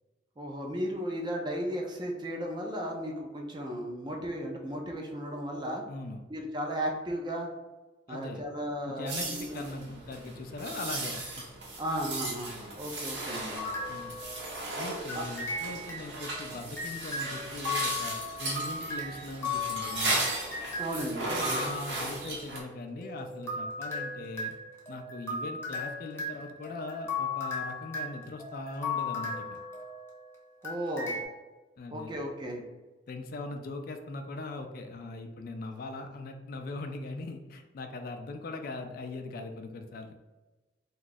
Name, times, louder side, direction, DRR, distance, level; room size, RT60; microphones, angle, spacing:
voice 1, 0.4-5.8 6.3-7.5 8.1-9.6 11.8-13.7 15.1-15.2 20.8-21.3 30.6-31.1 31.9-32.6, equal, 25° right, 1 dB, 0.5 m, -35 dB
voice 2, 5.9-6.2 8.1-8.4 8.9-11.2 13.9-14.1 14.8-20.2 21.4-24.5 24.9-29.6 31.8-32.1 33.1-40.2, left 2 dB, 55° left, 5 dB, 0.3 m, -40 dB
sound 1, 9.1-22.6, right 2 dB, 80° right, 0.8 m, -36 dB
sound 2, 13.6-14.7 15.1-22.0 23.0-30.2 30.6-31.2, left 3 dB, 15° left, 0.7 m, -37 dB
2.7 x 2.3 x 3.9 m, 1.2 s
head